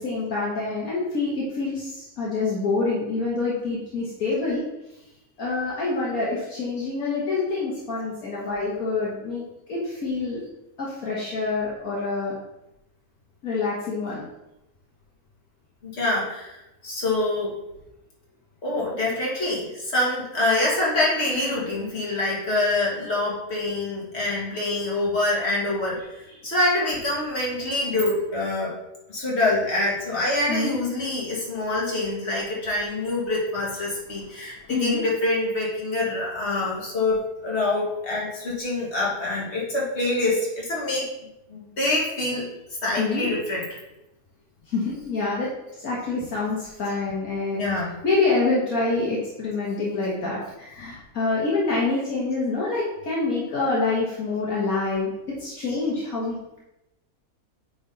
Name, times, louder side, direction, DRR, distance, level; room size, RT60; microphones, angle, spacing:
voice 1, 0.0-4.6 5.4-9.4 9.7-10.4 10.8-12.3 13.4-14.2 30.5-30.7 34.4-35.0 43.0-43.3 44.7-45.5 45.8-47.7 48.0-55.1 55.4-56.6, left 3 dB, 65° left, -6 dB, 1.8 m, -26 dB
voice 2, 15.8-16.6 16.8-17.6 18.6-26.0 26.4-28.8 29.1-41.1 41.5-42.5 42.8-43.7 47.5-48.0 55.7-55.8, left 2 dB, 45° left, -5 dB, 2.2 m, -25 dB
8.7 x 3.9 x 4.0 m, 0.90 s
omnidirectional pair, 1.6 m